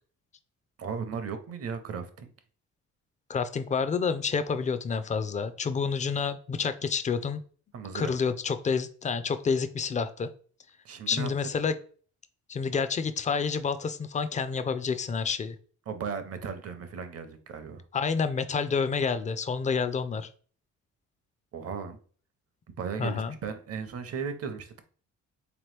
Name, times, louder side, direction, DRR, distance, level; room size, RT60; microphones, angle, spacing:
voice 1, 0.8-2.3 7.7-8.1 10.8-11.3 15.9-17.8 21.5-22.0 22.8-24.8, right 6 dB, 50° right, 9 dB, 0.7 m, -36 dB
voice 2, 3.3-7.4 7.9-10.3 11.1-11.8 12.5-15.6 17.9-20.3 23.0-23.3, left 5 dB, 25° left, 11 dB, 0.4 m, -29 dB
3.6 x 3.0 x 3.2 m, 0.44 s
cardioid pair, 90°, 30 cm